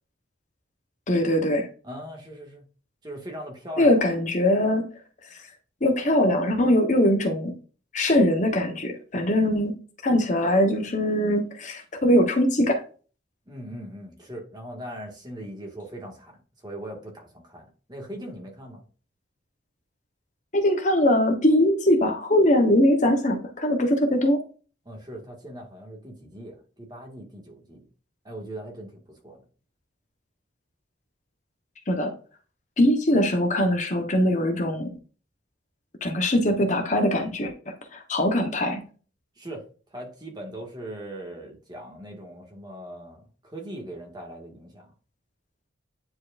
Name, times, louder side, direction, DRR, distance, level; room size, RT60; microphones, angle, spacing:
voice 1, 1.1-1.7 3.8-4.9 5.2-5.4 5.8-7.5 7.9-9.7 10.0-12.8 20.5-24.4 31.9-32.1 32.8-34.9 36.0-38.8, left 1 dB, 40° left, 4 dB, 1.1 m, -22 dB
voice 2, 1.8-2.7 3.0-4.0 13.5-18.8 24.8-27.8 28.2-29.4 39.4-44.9, right 1 dB, 20° right, 0 dB, 1.9 m, -40 dB
9.7 x 4.7 x 2.6 m, 0.38 s
head